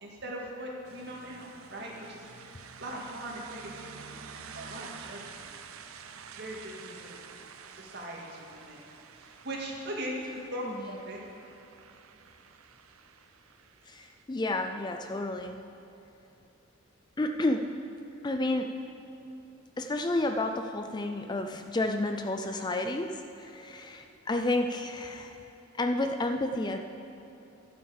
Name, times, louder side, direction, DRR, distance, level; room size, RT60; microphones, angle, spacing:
voice 1, 0.0-2.5 2.8-5.5 6.4-7.2 7.7-8.8 9.1-10.6 11.0-11.2, right 1 dB, 55° right, -2 dB, 2.0 m, -40 dB
sound 1, 0.9-14.2, right 6 dB, 85° right, 0.6 m, -49 dB
voice 2, 13.9-15.6 17.2-17.8 18.2-18.7 19.8-25.4 25.8-26.8, left 2 dB, 20° left, 6 dB, 0.4 m, -31 dB
12.0 x 6.4 x 7.2 m, 2.9 s
head